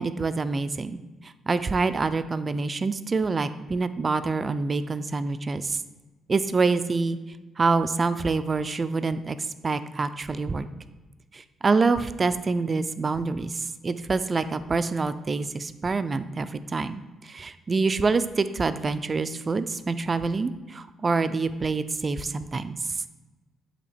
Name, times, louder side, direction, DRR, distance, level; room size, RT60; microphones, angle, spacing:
voice 1, 0.0-5.8 6.3-7.2 7.6-9.4 9.6-10.7 11.3-22.8, right 4 dB, 35° right, 12 dB, 0.3 m, -26 dB
8.2 x 2.8 x 4.2 m, 1.2 s
cardioid pair, 90°, 0 cm